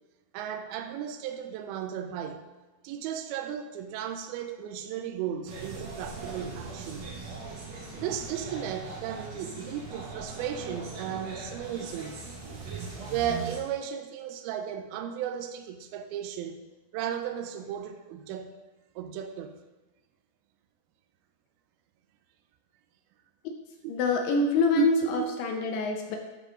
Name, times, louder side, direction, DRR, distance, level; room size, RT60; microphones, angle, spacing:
voice 1, 0.3-2.5 2.8-7.1 8.0-12.2 13.1-16.6 16.9-18.6 19.0-19.6 23.8-23.9 24.8-25.2, right 9 dB, 80° right, 7 dB, 2.4 m, -34 dB
sound 1, 5.5-13.6, right 4 dB, 65° right, 1.7 m, -40 dB
voice 2, 23.9-26.2, left 3 dB, 80° left, 3 dB, 2.0 m, -26 dB
12.5 x 4.6 x 3.8 m, 1.1 s
omnidirectional pair, 4.6 m